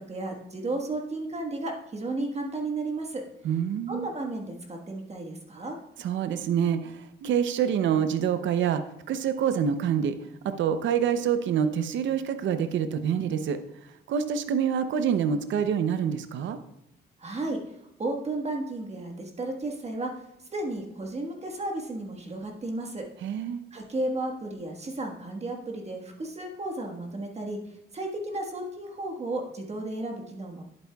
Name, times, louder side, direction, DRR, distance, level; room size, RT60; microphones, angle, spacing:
voice 1, 0.0-3.2 3.9-5.8 17.2-17.6 18.0-20.1 20.5-23.1 23.7-30.6, right 2 dB, 35° right, 2 dB, 1.5 m, -33 dB
voice 2, 3.4-4.1 6.0-8.8 9.1-16.6 23.2-23.6, right 8 dB, 70° right, 9 dB, 0.7 m, -26 dB
10.5 x 8.4 x 2.3 m, 0.82 s
cardioid pair, 90°, 20 cm